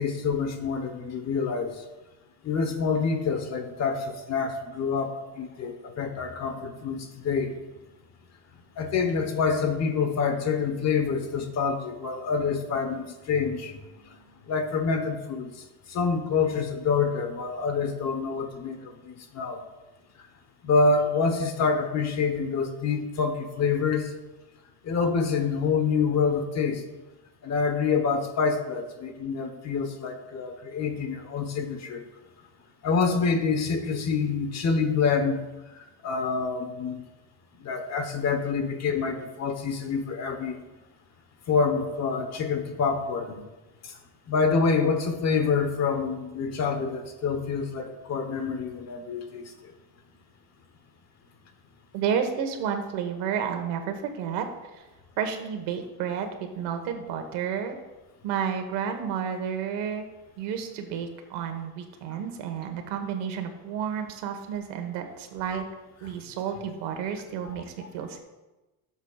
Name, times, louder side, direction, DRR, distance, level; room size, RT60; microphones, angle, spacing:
voice 1, 0.0-1.7 2.4-7.5 8.8-13.8 14.5-15.5 15.9-19.6 20.6-24.1 24.8-26.8 27.4-32.0 32.8-35.5 36.0-37.0 37.6-40.6 41.5-43.4 44.3-49.4, left 5 dB, 40° left, 6 dB, 1.1 m, -27 dB
voice 2, 51.9-54.5 54.8-54.9 55.2-57.8 58.2-60.1 60.4-65.6 66.0-68.2, right 7 dB, 75° right, 5 dB, 1.5 m, -31 dB
16.0 x 7.2 x 2.4 m, 1.1 s
cardioid pair, 145°, 41 cm